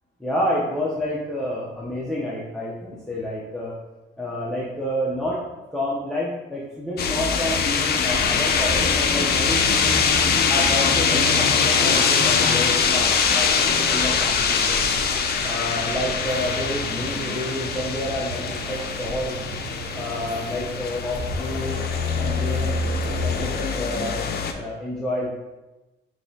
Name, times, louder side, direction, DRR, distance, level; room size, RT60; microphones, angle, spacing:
voice 1, 0.2-3.7 4.2-5.4 5.7-10.0 10.5-14.9 15.4-19.5 19.9-21.8 22.1-22.9 23.2-24.2 24.5-25.3, left 1 dB, 5° left, -6 dB, 0.7 m, -29 dB
sound 1, 7.0-24.5, left 5 dB, 55° left, 0.5 m, -23 dB
sound 2, 8.1-23.6, right 3 dB, 70° right, 0.7 m, -38 dB
5.1 x 2.9 x 2.8 m, 1.1 s
cardioid pair, 90°, 20 cm